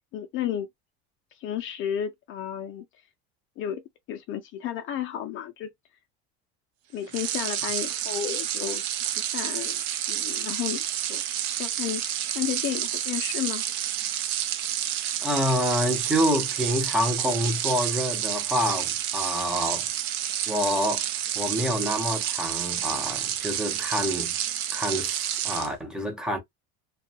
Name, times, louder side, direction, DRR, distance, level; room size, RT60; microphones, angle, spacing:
voice 1, 0.1-0.7 1.3-2.8 3.6-3.8 4.1-5.7 6.9-9.8 10.1-11.2 11.6-13.6, left 10 dB, 40° left, 0.4 m, -32 dB
sound 1, 7.1-25.7, right 11 dB, 75° right, 0.7 m, -29 dB
voice 2, 15.2-19.9 20.5-21.1 21.4-24.4 24.7-26.4, equal, ahead, 0.6 m, -27 dB
2.6 x 2.2 x 2.7 m
cardioid pair, 150°, 33 cm